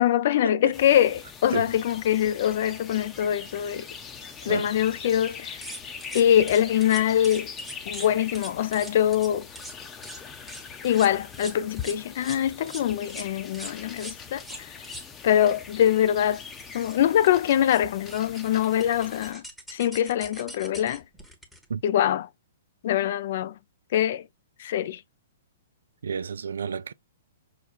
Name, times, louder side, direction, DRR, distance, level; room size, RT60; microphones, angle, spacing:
voice 1, 0.0-3.9 4.5-5.6 6.1-7.5 7.9-9.5 10.8-14.7 15.2-16.4 16.7-19.4 19.7-21.0 21.8-22.3 22.8-23.5 23.9-24.2 24.6-25.0, left 10 dB, 60° left, 0.4 m, -23 dB
sound 1, 0.7-19.3, left 6 dB, 20° left, 0.7 m, -42 dB
sound 2, 5.6-8.1 8.3-9.3 9.5-9.7 10.0-10.2 10.5-12.4 12.7-12.8 13.1-13.3 13.5-15.1 15.8-15.9 16.2-16.3 16.5-17.3 17.7-17.8 18.1-21.6, right 1 dB, ahead, 1.1 m, -41 dB
voice 2, 26.0-26.9, right 6 dB, 80° right, 0.3 m, -31 dB
5.8 x 2.2 x 2.4 m
hypercardioid pair, 130°, 0 cm